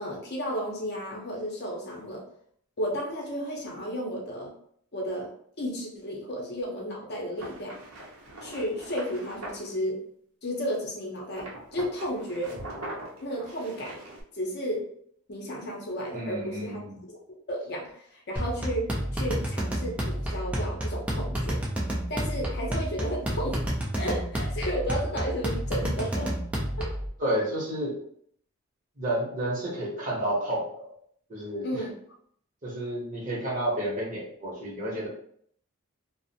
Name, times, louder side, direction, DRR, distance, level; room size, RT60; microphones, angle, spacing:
voice 1, 0.0-2.2 2.8-4.5 4.9-5.3 5.6-7.8 8.4-10.0 10.4-12.6 13.2-14.0 14.3-14.9 15.3-17.2 17.5-21.6 22.1-23.6 23.9-26.3 26.8-26.9 31.6-31.9, equal, 50° left, -2 dB, 0.6 m, -33 dB
sound 1, 7.4-9.7 11.3-14.2, right 1 dB, 75° right, 0.6 m, -41 dB
voice 2, 16.1-17.0 27.2-28.0 29.0-30.9 31.3-31.9 32.6-35.1, right 1 dB, 35° right, -5 dB, 0.8 m, -30 dB
sound 2, 18.4-27.1, right 1 dB, 5° right, 0.3 m, -30 dB
2.5 x 2.0 x 2.7 m, 0.64 s
head